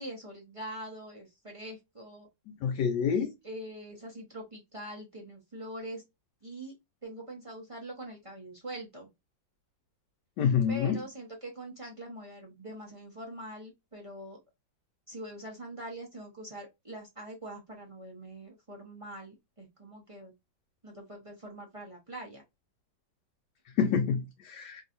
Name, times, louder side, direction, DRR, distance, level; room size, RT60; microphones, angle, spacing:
voice 1, 0.0-2.3 3.4-6.0 6.4-6.7 7.0-9.1 10.7-14.4 15.1-20.3 20.8-22.4, right 1 dB, 30° right, 0.6 m, -43 dB
voice 2, 2.6-3.3 10.4-11.0 23.8-24.8, left 7 dB, 75° left, 1.1 m, -27 dB
3.0 x 2.8 x 2.5 m
omnidirectional pair, 2.0 m